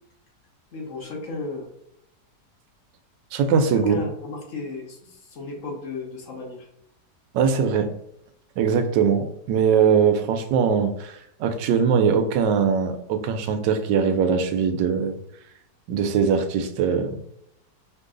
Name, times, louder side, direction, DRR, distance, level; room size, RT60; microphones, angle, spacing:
voice 1, 0.7-1.7 3.7-6.7, left 3 dB, 50° left, 0 dB, 1.3 m, -34 dB
voice 2, 3.3-4.0 7.3-7.9 8.6-15.2 15.9-17.2, right 6 dB, 85° right, 7 dB, 1.3 m, -21 dB
4.5 x 2.7 x 3.7 m, 0.75 s
omnidirectional pair, 1.9 m